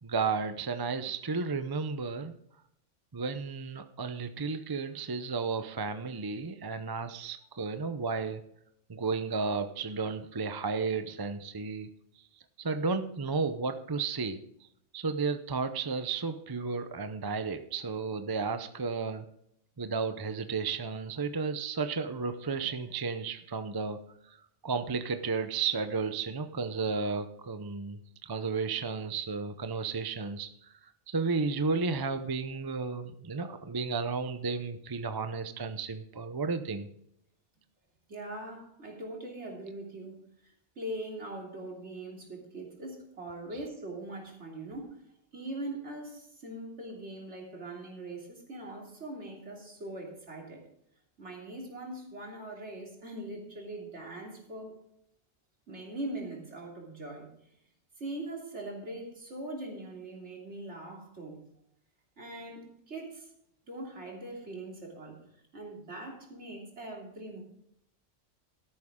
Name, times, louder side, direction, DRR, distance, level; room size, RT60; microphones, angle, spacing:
voice 1, 0.0-2.3 3.1-8.4 8.9-12.2 12.6-14.4 14.9-19.3 19.8-24.4 24.6-36.9, right 4 dB, 25° right, 9 dB, 0.5 m, -33 dB
voice 2, 38.1-45.0 45.3-50.6 51.2-54.8 55.7-57.3 58.0-61.4 62.2-63.3 63.7-65.2 65.5-67.4, right 1 dB, 65° right, -1 dB, 3.4 m, -41 dB
13.0 x 11.0 x 3.7 m, 0.72 s
omnidirectional pair, 1.3 m